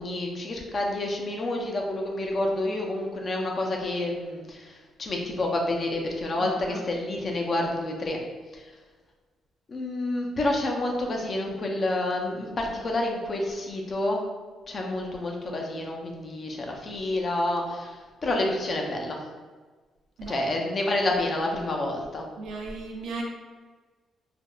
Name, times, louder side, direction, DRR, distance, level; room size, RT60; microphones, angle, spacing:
voice 1, 0.0-8.2 8.5-8.6 9.7-14.2 14.7-19.2 20.3-22.3, left 1 dB, 40° left, 1 dB, 0.5 m, -29 dB
voice 2, 6.4-6.8 20.2-20.4 22.4-23.2, right 3 dB, 75° right, 0 dB, 0.5 m, -36 dB
3.4 x 2.4 x 2.3 m, 1.4 s
cardioid pair, 90°, 0 cm